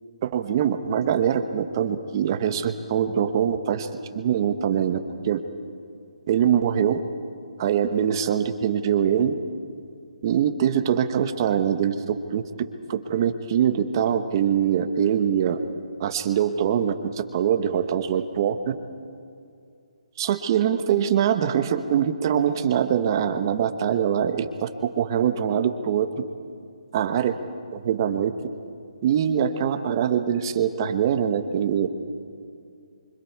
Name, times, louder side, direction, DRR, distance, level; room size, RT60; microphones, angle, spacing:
voice 1, 0.2-5.0 5.2-5.4 6.3-7.0 7.6-9.3 10.2-12.4 12.9-15.6 16.0-18.7 20.2-24.7 24.9-26.1 26.9-27.3 27.7-28.3 29.0-31.9, right 9 dB, 35° right, 8 dB, 1.3 m, -23 dB
27.5 x 25.0 x 4.8 m, 2.4 s
hypercardioid pair, 165°, 4 cm